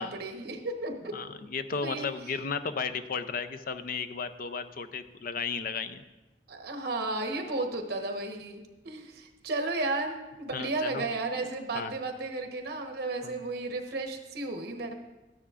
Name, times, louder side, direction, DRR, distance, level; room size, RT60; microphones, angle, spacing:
voice 1, 0.0-1.1 1.8-2.1 6.5-14.9, right 2 dB, 60° right, 4 dB, 1.1 m, -33 dB
voice 2, 1.1-6.0 10.5-11.0 11.7-11.9 13.2-13.4, left 5 dB, 55° left, 11 dB, 0.5 m, -34 dB
13.5 x 9.8 x 2.5 m, 1.1 s
head